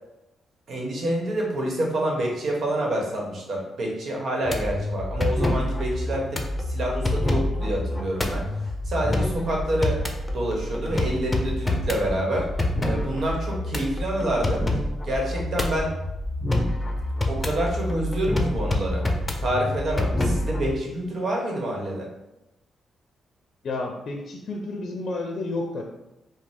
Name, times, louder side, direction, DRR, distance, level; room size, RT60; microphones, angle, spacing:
voice 1, 0.7-10.0 10.3-12.5 12.8-14.6 15.0-15.9 17.2-19.0 19.4-22.1, right 1 dB, 60° right, -1 dB, 1.2 m, -27 dB
sound 1, 4.4-20.8, left 1 dB, 20° left, 0.7 m, -27 dB
voice 2, 23.6-25.8, left 2 dB, 65° left, 2 dB, 0.5 m, -31 dB
4.9 x 2.1 x 3.6 m, 0.92 s
cardioid pair, 65°, 0 cm